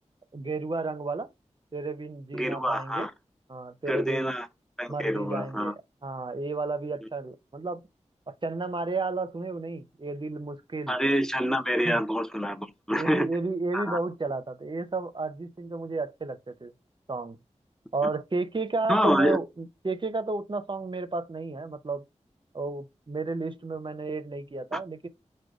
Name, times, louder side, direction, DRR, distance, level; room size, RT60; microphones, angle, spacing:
voice 1, 0.3-1.3 1.7-3.1 3.5-4.3 4.9-5.7 6.0-7.8 8.3-10.9 11.8-12.0 12.9-16.7 17.1-17.4 17.9-22.0 22.5-25.1, right 3 dB, 40° right, 0.7 m, -32 dB
voice 2, 2.3-3.1 3.9-4.5 4.8-5.7 10.9-13.3 13.7-14.0 18.9-19.4 24.7-24.8, equal, 5° left, 0.6 m, -26 dB
5.0 x 2.2 x 4.7 m
wide cardioid pair, 50°, 12 cm